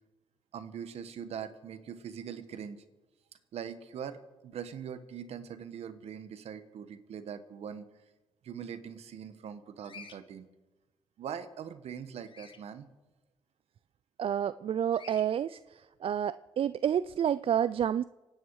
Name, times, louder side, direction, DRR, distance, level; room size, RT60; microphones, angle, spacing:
voice 1, 0.5-2.8 3.5-7.8 8.4-10.5 11.2-12.8, right 8 dB, 75° right, 11 dB, 1.3 m, -42 dB
Bird vocalization bird call bird song, 9.8-10.2 12.3-12.6 14.9-15.2, left 5 dB, 50° left, 1.5 m, -49 dB
voice 2, 14.2-15.6 16.0-18.0, right 9 dB, 60° right, 16 dB, 0.4 m, -29 dB
25.5 x 9.3 x 4.8 m, 1.1 s
supercardioid pair, 60°, 11 cm